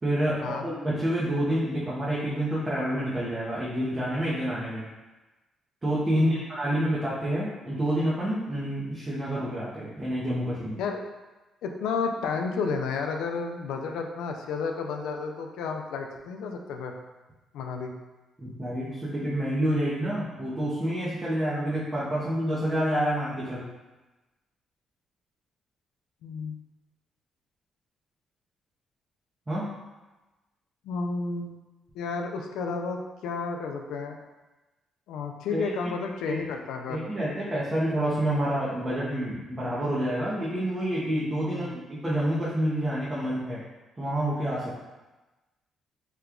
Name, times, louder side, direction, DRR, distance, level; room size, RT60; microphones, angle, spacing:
voice 1, 0.0-4.8 5.8-10.8 18.4-23.7 29.5-29.7 35.5-35.6 36.2-36.4 36.9-43.6 44.0-44.8, right 1 dB, 25° right, -8 dB, 0.7 m, -28 dB
voice 2, 11.6-16.9 17.5-17.9 26.2-26.6 30.8-31.6 32.0-34.2 35.1-37.0 41.5-41.8, left 4 dB, 85° left, 3 dB, 0.3 m, -32 dB
2.9 x 2.3 x 3.5 m, 1.1 s
cardioid pair, 90°, 0 cm